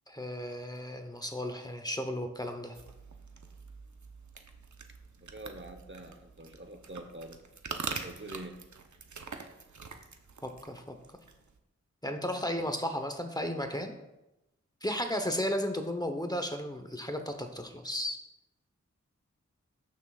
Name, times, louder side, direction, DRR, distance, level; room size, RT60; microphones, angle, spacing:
voice 1, 0.1-2.8 10.4-10.8 12.0-13.9 14.8-18.2, equal, 15° left, 5 dB, 0.9 m, -34 dB
sound 1, 2.7-11.6, right 4 dB, 75° right, 0.8 m, -45 dB
voice 2, 5.2-7.4 7.7-8.6, right 2 dB, 40° right, 6 dB, 0.9 m, -45 dB
14.0 x 6.3 x 2.4 m, 0.94 s
wide cardioid pair, 45°, 30 cm